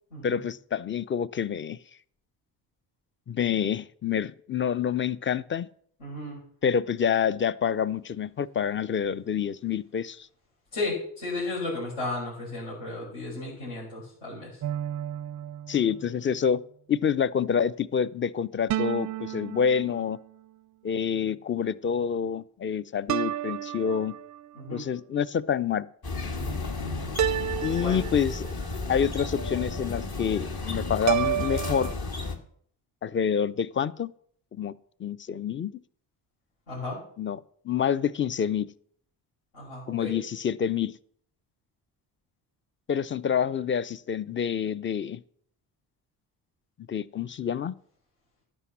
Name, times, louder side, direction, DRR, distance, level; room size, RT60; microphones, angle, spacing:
voice 1, 0.2-1.8 3.3-5.7 6.6-10.3 15.7-16.6 16.9-20.2 20.8-24.2 24.7-25.9 27.6-28.5 28.9-31.9 33.0-34.1 34.5-34.7 35.0-35.7 37.2-38.7 39.9-40.9 42.9-45.2 46.9-47.7, left 7 dB, 25° left, 19 dB, 0.5 m, -27 dB
voice 2, 6.0-6.4 10.7-14.6 24.6-24.8 26.3-26.6 27.8-28.1 36.7-37.0 39.5-40.1, left 2 dB, 70° left, -7 dB, 6.1 m, -34 dB
sound 1, 14.6-16.3 18.7-20.4 23.1-24.6 27.2-28.8 31.1-31.9, right 11 dB, 40° right, 0.5 m, -31 dB
sound 2, 26.0-32.4, left 3 dB, 45° left, 1.9 m, -33 dB
11.0 x 6.1 x 7.3 m, 0.62 s
hypercardioid pair, 45°, 50 cm